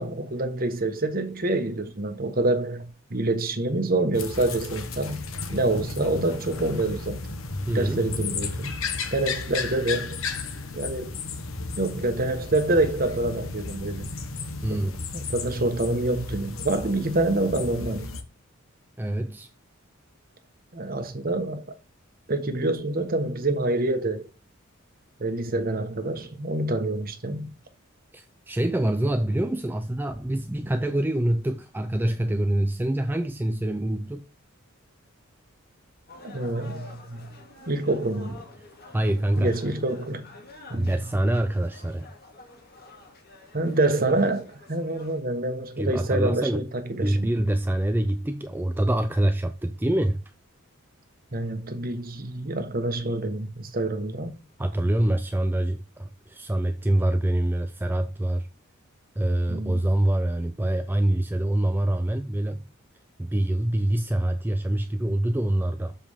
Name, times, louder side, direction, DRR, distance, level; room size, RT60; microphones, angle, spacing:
voice 1, 0.0-7.2 7.7-8.8 9.1-10.2 10.7-11.1 11.8-14.1 14.7-14.8 15.1-18.2 20.7-21.6 22.3-24.3 25.2-27.6 36.2-37.4 37.7-38.4 39.4-40.3 40.7-41.0 43.5-47.3 51.3-54.4 59.5-59.8, right 2 dB, 45° right, 1.2 m, -27 dB
sound 1, 4.1-18.2, left 3 dB, 70° left, 1.1 m, -34 dB
voice 2, 7.7-8.1 14.6-15.1 19.0-19.5 28.1-34.3 38.9-39.5 40.7-42.1 45.8-46.7 47.0-50.2 54.6-58.5 59.2-62.6 63.2-66.0, right 1 dB, 10° right, 0.4 m, -25 dB
sound 2, 36.1-45.2, left 3 dB, 45° left, 2.1 m, -48 dB
7.5 x 5.1 x 3.5 m
head